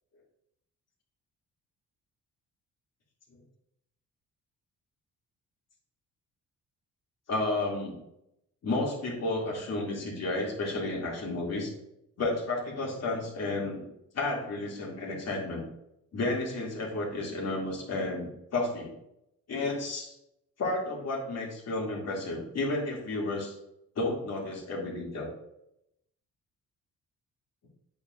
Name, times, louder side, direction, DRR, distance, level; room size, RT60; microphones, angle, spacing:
voice 1, 7.3-8.0 8.6-11.7 12.2-13.8 14.1-15.6 16.1-18.9 19.5-20.1 20.6-23.5 23.9-25.3, left 2 dB, 55° left, -3 dB, 2.9 m, -32 dB
8.3 x 7.2 x 2.7 m, 0.82 s
cardioid pair, 90°, 30 cm